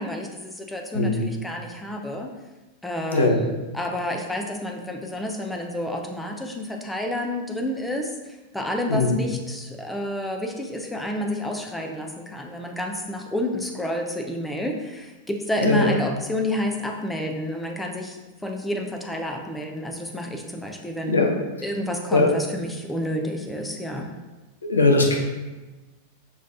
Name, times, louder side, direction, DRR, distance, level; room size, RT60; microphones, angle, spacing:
voice 1, 0.0-2.3 2.8-21.3 21.6-24.1, left 1 dB, 5° left, 2 dB, 0.5 m, -29 dB
voice 2, 0.9-1.3 3.1-3.4 8.9-9.2 15.6-15.9 21.0-21.3 22.1-22.3 24.7-25.2, left 3 dB, 75° left, 1 dB, 0.5 m, -19 dB
5.4 x 3.2 x 2.5 m, 1.1 s
figure-of-eight pair, 90°, 0 cm